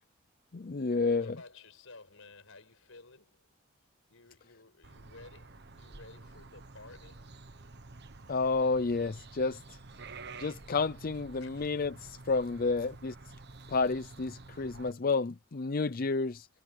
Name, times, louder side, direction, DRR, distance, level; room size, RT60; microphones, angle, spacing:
voice 1, 0.5-1.3 8.3-9.8 10.4-13.1 13.7-16.5, left 4 dB, 40° left, 0.5 m, -30 dB
voice 2, 1.1-3.6 4.1-7.4 11.4-11.5, left 3 dB, 70° left, 5.2 m, -54 dB
sound 1, 4.8-14.9, right 3 dB, 50° right, 1.3 m, -50 dB
head